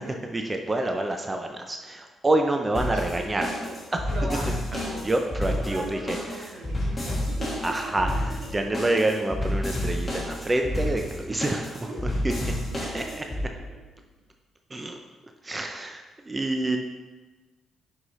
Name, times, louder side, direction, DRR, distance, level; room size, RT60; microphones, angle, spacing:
voice 1, 0.3-3.5 5.0-6.5 7.6-8.1 8.5-11.9 12.9-13.0 14.7-15.0 15.4-16.8, right 2 dB, 15° right, 4 dB, 0.4 m, -27 dB
sound 1, 2.7-13.4, left 1 dB, 10° left, 1.5 m, -30 dB
voice 2, 2.9-3.8 4.1-5.0 5.5-8.7 11.9-12.0 12.7-13.8 14.7-14.8, right 1 dB, 85° right, -5 dB, 2.0 m, -39 dB
6.3 x 5.5 x 3.1 m, 1.2 s
cardioid pair, 170°, 0 cm